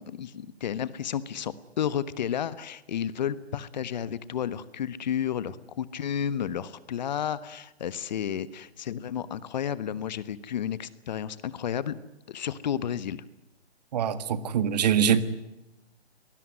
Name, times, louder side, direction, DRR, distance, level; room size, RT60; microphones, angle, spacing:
voice 1, 0.0-12.0 12.3-13.2, left 9 dB, 45° left, 17 dB, 1.3 m, -32 dB
voice 2, 13.9-15.3, right 8 dB, 40° right, 14 dB, 1.8 m, -24 dB
24.0 x 20.0 x 9.6 m, 0.93 s
hypercardioid pair, 145°, 32 cm